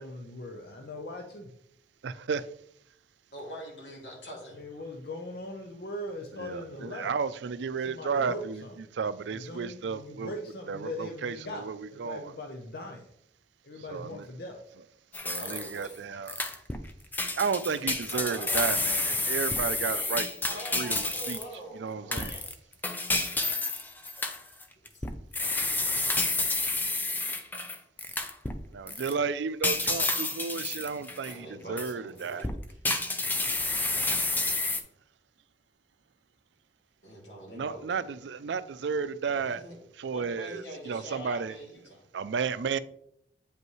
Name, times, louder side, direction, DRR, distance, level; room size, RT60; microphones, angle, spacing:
voice 1, 0.0-1.5 4.5-7.1 7.8-8.7 9.3-13.1 13.6-14.6, left 1 dB, 60° left, 0.7 m, -40 dB
voice 2, 2.0-2.5 6.4-8.6 8.9-10.3 10.7-12.3 13.9-14.3 15.2-16.4 17.4-20.3 20.7-21.4 21.8-22.3 27.5-27.6 28.7-32.5 33.7-34.7 37.5-39.6 40.0-41.6 42.1-42.8, right 5 dB, 85° right, 0.4 m, -33 dB
voice 3, 3.3-4.6 15.4-16.2 18.1-18.8 19.6-22.5 24.9-25.0 31.2-32.8 37.0-38.1 39.3-42.0, right 1 dB, 85° left, 2.9 m, -44 dB
sound 1, 15.1-15.9 16.3-16.9 17.1-21.5 22.1-28.6 28.9-29.1 29.6-31.3 31.8-31.9 32.4-34.8, left 2 dB, 10° left, 0.5 m, -30 dB
8.2 x 5.4 x 3.1 m
head